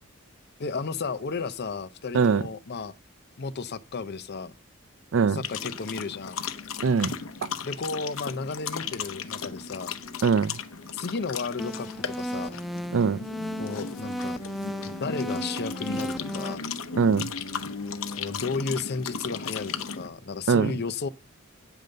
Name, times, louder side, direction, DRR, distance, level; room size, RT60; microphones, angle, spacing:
voice 1, 0.6-2.9 3.4-4.5 5.3-6.5 7.6-10.0 10.9-12.6 13.6-14.4 14.8-16.7 18.1-21.1, left 4 dB, 50° left, 0.6 m, -33 dB
sound 1, 5.4-20.1, left 6 dB, 80° left, 0.8 m, -36 dB
voice 2, 6.8-7.2 7.4-7.5 10.2-10.6 12.9-13.2 17.0-17.3 20.5-20.7, right 5 dB, 65° right, 0.4 m, -22 dB
sound 2, 11.6-16.6, equal, ahead, 0.4 m, -35 dB
9.2 x 5.3 x 6.6 m
head